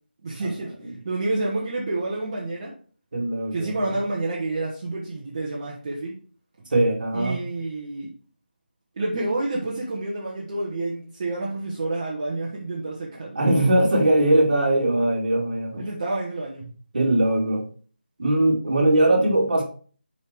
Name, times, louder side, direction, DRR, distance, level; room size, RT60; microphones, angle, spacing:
voice 1, 0.2-2.7 3.5-6.2 6.6-6.7 7.1-8.1 9.0-13.4 15.8-16.7, right 2 dB, 30° right, 1.1 m, -29 dB
voice 2, 3.1-3.8 6.7-7.4 13.4-15.9 16.9-17.7 18.2-19.6, right 1 dB, 55° right, 2.3 m, -20 dB
5.6 x 5.0 x 4.5 m
figure-of-eight pair, 170°, 6 cm